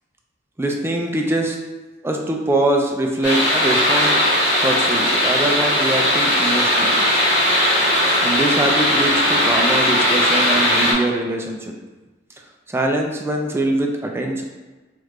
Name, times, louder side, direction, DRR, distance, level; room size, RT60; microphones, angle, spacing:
voice 1, 0.6-1.6 2.0-4.2 4.6-7.0 8.2-11.7 12.7-14.4, right 1 dB, 15° right, 1 dB, 0.3 m, -23 dB
sound 1, 3.2-10.9, left 1 dB, 65° left, 1.4 m, -18 dB
3.3 x 2.4 x 3.1 m, 1.2 s
head